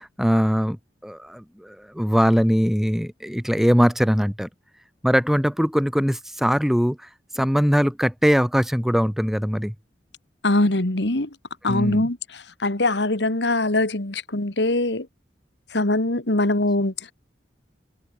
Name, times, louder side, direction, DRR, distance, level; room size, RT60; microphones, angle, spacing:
voice 1, 0.0-4.5 5.0-7.1 7.3-9.7 11.7-12.0, equal, ahead, 3.1 m, -21 dB
voice 2, 10.4-11.3 11.6-15.1 15.7-17.1, left 2 dB, 85° left, 2.3 m, -22 dB
open air
head